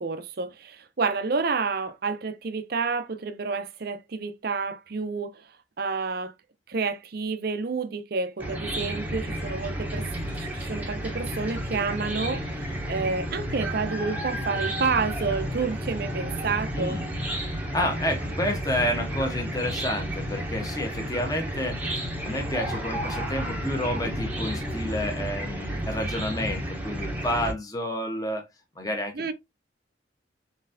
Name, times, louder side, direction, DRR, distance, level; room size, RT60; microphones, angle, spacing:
voice 1, 0.0-5.5 5.8-6.3 6.7-17.0 29.1-29.3, right 4 dB, 50° right, 0.5 m, -29 dB
Chicken rooster / Cricket, 8.4-27.5, equal, 10° right, 0.8 m, -32 dB
voice 2, 16.7-17.1 17.5-28.5 28.8-29.3, left 1 dB, 20° left, 0.9 m, -30 dB
4.0 x 3.1 x 2.6 m
head